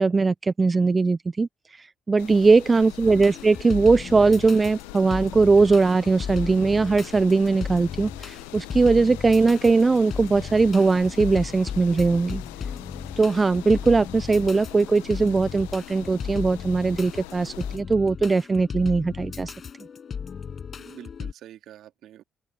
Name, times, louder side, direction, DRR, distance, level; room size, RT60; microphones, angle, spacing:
voice 1, 0.0-12.4 13.2-19.5, right 4 dB, 30° right, 1.0 m, -20 dB
sound 1, 2.2-17.8, left 27 dB, 75° left, 1.5 m, -43 dB
voice 2, 2.6-3.2 20.8-22.2, right 12 dB, 60° right, 3.3 m, -46 dB
sound 2, 3.0-21.3, left 6 dB, 45° left, 7.7 m, -36 dB
open air
figure-of-eight pair, 45°, 0 cm